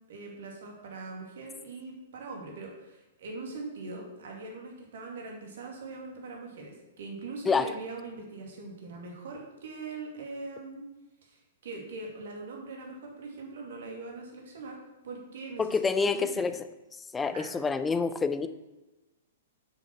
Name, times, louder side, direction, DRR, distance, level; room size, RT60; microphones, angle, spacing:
voice 1, 0.1-10.8 11.2-14.8 15.0-15.9 16.1-16.5 17.2-17.6, right 3 dB, 60° right, 1 dB, 2.5 m, -42 dB
voice 2, 15.6-16.5 17.1-18.5, left 4 dB, 15° left, 12 dB, 0.6 m, -27 dB
9.0 x 6.3 x 5.9 m, 1.1 s
figure-of-eight pair, 110°, 0 cm